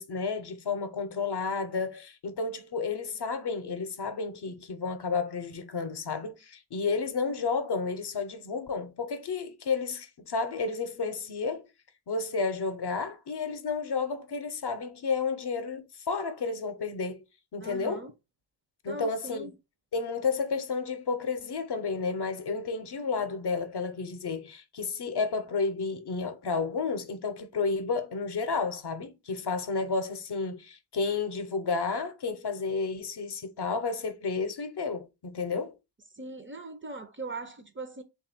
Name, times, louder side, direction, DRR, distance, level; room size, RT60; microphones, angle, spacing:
voice 1, 0.0-11.7 12.1-17.2 17.5-18.1 18.8-19.5 19.9-35.7, left 4 dB, 65° left, 0.6 m, -31 dB
voice 2, 17.6-18.1 18.9-19.5 36.1-38.0, right 2 dB, 25° right, 0.5 m, -40 dB
3.3 x 2.3 x 4.2 m
wide cardioid pair, 80°, 44 cm